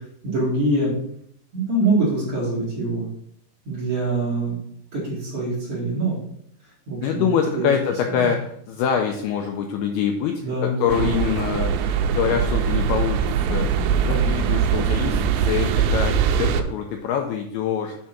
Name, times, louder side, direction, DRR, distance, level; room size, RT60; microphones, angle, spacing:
voice 1, 0.2-0.9 1.5-3.1 3.7-4.6 4.9-6.2 6.9-7.7 8.1-8.3 10.4-11.1, right 2 dB, 40° right, -6 dB, 2.5 m, -24 dB
voice 2, 7.0-13.7 14.0-18.0, left 8 dB, 80° left, 3 dB, 2.3 m, -25 dB
sound 1, 10.9-16.6, right 7 dB, 85° right, 2.7 m, -22 dB
8.0 x 3.7 x 5.9 m, 0.70 s
omnidirectional pair, 5.1 m